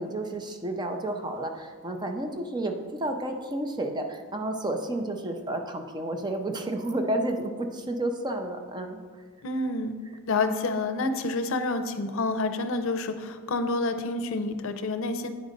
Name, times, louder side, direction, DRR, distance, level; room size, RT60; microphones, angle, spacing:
voice 1, 0.0-9.0, right 1 dB, 20° right, 5 dB, 0.5 m, -31 dB
voice 2, 9.4-10.0 10.3-15.3, left 3 dB, 65° left, 9 dB, 0.6 m, -28 dB
9.0 x 3.9 x 5.2 m, 1.5 s
head